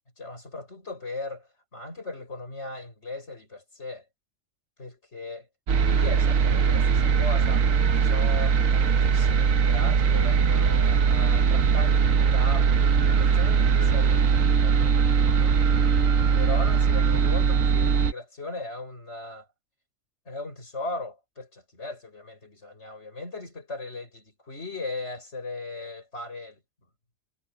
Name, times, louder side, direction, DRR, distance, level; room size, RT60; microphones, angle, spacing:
voice 1, 0.2-4.0 4.8-5.5 5.8-7.7 7.9-12.7 13.2-15.5 16.3-19.5 20.3-26.6, left 2 dB, 60° left, 6.1 m, -38 dB
sound 1, 5.7-18.1, right 6 dB, 85° right, 1.4 m, -21 dB
omnidirectional pair, 1.3 m